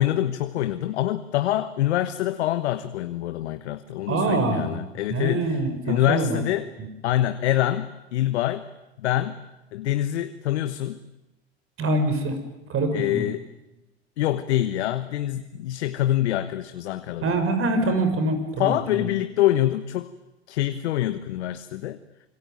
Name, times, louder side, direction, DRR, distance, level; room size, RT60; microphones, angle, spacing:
voice 1, 0.0-5.6 5.8-6.7 7.0-8.6 9.0-9.4 9.7-11.0 12.9-13.4 14.2-17.3 18.6-20.1 20.5-22.0, left 13 dB, 75° left, 10 dB, 1.3 m, -25 dB
voice 2, 4.1-4.8 5.1-6.4 6.8-6.9 11.8-12.4 12.7-13.3 17.2-19.1, right 2 dB, 40° right, 9 dB, 6.2 m, -24 dB
26.0 x 24.0 x 9.2 m, 0.99 s
hypercardioid pair, 85°, 34 cm